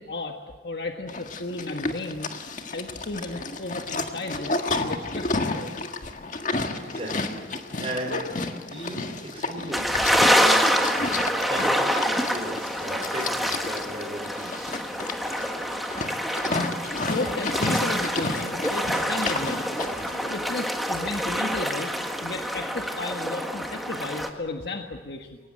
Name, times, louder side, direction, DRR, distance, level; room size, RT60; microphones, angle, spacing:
voice 1, 0.0-2.4 2.7-5.8 16.9-19.6 20.3-21.9 22.2-25.4, left 2 dB, 60° left, 3 dB, 1.5 m, -34 dB
Livestock farm animals working animals, 1.1-20.3, left 3 dB, 45° left, 1.7 m, -31 dB
voice 2, 6.8-14.8, right 1 dB, 30° right, -4 dB, 4.3 m, -37 dB
sound 1, 9.7-24.3, equal, ahead, 1.7 m, -26 dB
23.0 x 19.0 x 8.9 m, 1.3 s
head